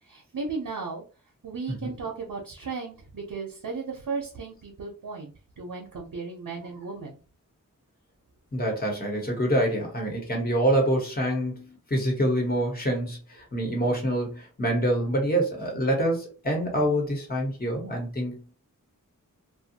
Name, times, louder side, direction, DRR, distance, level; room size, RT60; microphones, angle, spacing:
voice 1, 0.1-1.0 1.4-7.2, right 4 dB, 80° right, -2 dB, 0.8 m, -35 dB
voice 2, 8.5-13.2 13.5-18.5, right 1 dB, 30° left, 0 dB, 1.1 m, -26 dB
2.6 x 2.2 x 2.7 m, 0.36 s
wide cardioid pair, 70°, 33 cm